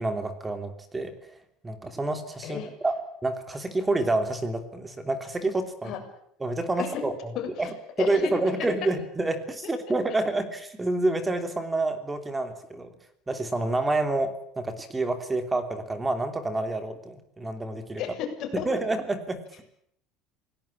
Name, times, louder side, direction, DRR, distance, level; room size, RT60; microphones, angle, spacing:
voice 1, 0.0-1.4 1.6-3.0 3.2-6.0 6.4-7.3 7.6-12.9 13.3-18.0 18.6-19.4, right 2 dB, 10° right, 9 dB, 3.1 m, -28 dB
voice 2, 7.4-7.7 8.0-8.2 18.0-18.7, left 9 dB, 45° left, 3 dB, 7.5 m, -33 dB
27.5 x 18.5 x 8.8 m, 0.70 s
cardioid pair, 155°, 0 cm